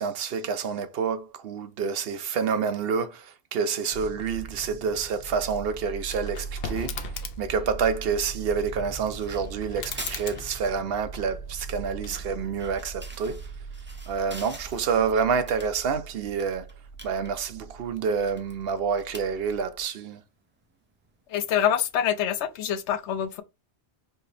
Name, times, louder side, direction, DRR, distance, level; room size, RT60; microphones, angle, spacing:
voice 1, 0.0-7.1 7.4-13.4 14.1-16.7 17.0-20.2, right 6 dB, 65° right, 0.8 m, -28 dB
sound 1, 3.9-19.8, right 4 dB, 20° left, 0.8 m, -41 dB
sound 2, 4.2-22.4, right 1 dB, 10° right, 0.6 m, -49 dB
sound 3, 6.2-7.6 9.7-11.5 12.0-12.6, left 6 dB, 65° left, 0.8 m, -39 dB
voice 2, 21.3-23.4, left 9 dB, 90° left, 0.9 m, -25 dB
4.5 x 2.9 x 3.2 m
omnidirectional pair, 1.1 m